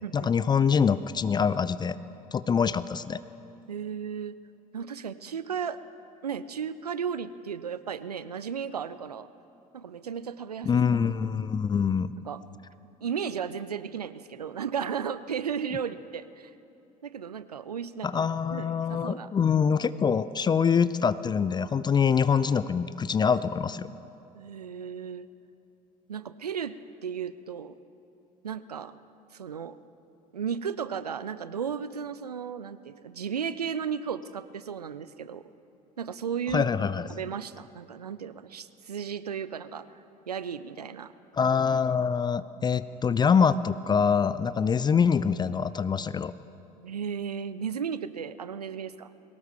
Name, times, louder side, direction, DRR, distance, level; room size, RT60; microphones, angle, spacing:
voice 1, 0.1-2.0 2.3-3.2 10.6-12.1 18.0-23.9 36.5-37.1 41.3-46.3, left 6 dB, 20° left, 16 dB, 0.4 m, -25 dB
voice 2, 3.7-4.4 4.7-5.8 6.2-9.3 9.7-10.8 12.3-12.4 13.0-16.5 17.0-18.2 18.5-19.3 24.3-25.3 26.1-26.7 27.0-27.8 28.4-28.9 29.3-29.8 30.3-35.5 36.0-36.7 37.1-40.0 40.3-41.1 46.8-49.1, right 7 dB, 85° right, 15 dB, 0.5 m, -34 dB
21.5 x 18.5 x 3.6 m, 2.8 s
figure-of-eight pair, 60°, 19 cm